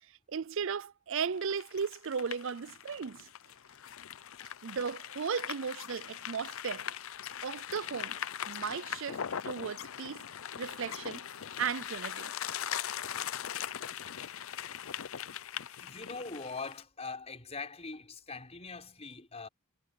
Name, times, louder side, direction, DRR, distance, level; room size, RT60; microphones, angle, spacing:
voice 1, 0.3-3.3 4.6-6.9 7.4-8.2 8.5-10.2 10.6-11.3 11.6-12.3, right 6 dB, 60° right, 0.5 m, -36 dB
sound 1, 1.4-16.8, left 9 dB, 70° left, 0.6 m, -40 dB
voice 2, 15.8-19.5, left 4 dB, 30° left, 5.6 m, -42 dB
head